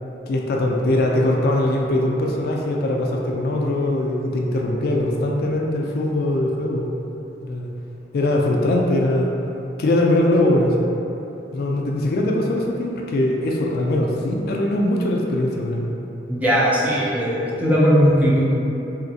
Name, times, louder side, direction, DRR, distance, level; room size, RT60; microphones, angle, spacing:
voice 1, 0.3-6.9 7.4-7.7 8.1-9.3 9.8-10.8 11.5-15.9, left 1 dB, 60° left, 0 dB, 0.3 m, -21 dB
voice 2, 16.3-18.4, equal, 10° right, -7 dB, 0.5 m, -18 dB
3.2 x 2.8 x 2.6 m, 3.0 s
head